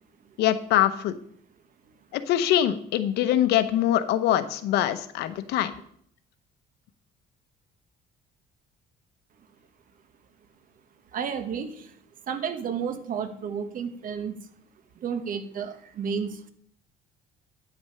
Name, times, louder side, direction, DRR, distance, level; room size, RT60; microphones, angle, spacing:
voice 1, 0.4-1.2 2.1-5.7, left 12 dB, 80° left, 12 dB, 0.8 m, -23 dB
voice 2, 11.1-11.9 12.3-14.4 15.0-16.5, right 7 dB, 55° right, 10 dB, 1.1 m, -32 dB
9.5 x 6.1 x 5.6 m, 0.64 s
cardioid pair, 110°, 17 cm